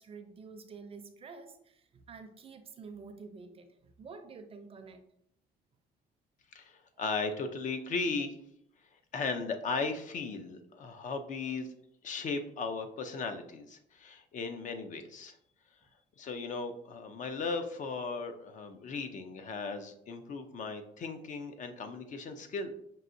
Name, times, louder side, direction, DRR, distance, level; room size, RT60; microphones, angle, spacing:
voice 1, 0.0-5.0, right 4 dB, 35° right, 7 dB, 0.5 m, -49 dB
voice 2, 6.5-8.4 9.1-11.7 12.0-15.4 16.2-22.7, left 4 dB, 50° left, 8 dB, 0.5 m, -37 dB
5.4 x 2.7 x 2.6 m, 0.73 s
cardioid pair, 110°, 17 cm